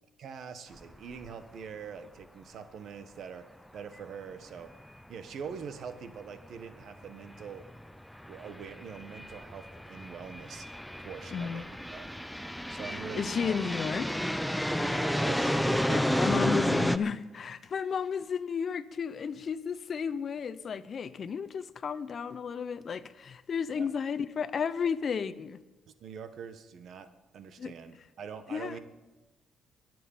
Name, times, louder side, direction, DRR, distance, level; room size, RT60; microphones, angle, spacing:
voice 1, 0.2-3.5 3.7-4.7 5.1-7.6 8.3-10.7 11.0-11.6 11.9-12.1 12.7-13.6 14.8-16.2 23.7-23.9 26.0-27.1 27.3-28.8, right 6 dB, 65° right, 1.3 m, -43 dB
sound 1, 0.8-1.0 1.3-1.4 5.4-5.5 6.6-6.7 7.4-17.0, equal, 5° left, 0.6 m, -31 dB
voice 2, 11.3-11.7 13.2-14.1 15.9-25.6 27.6-27.7 28.5-28.8, left 6 dB, 50° left, 0.7 m, -33 dB
22.5 x 7.7 x 5.6 m
cardioid pair, 90°, 0 cm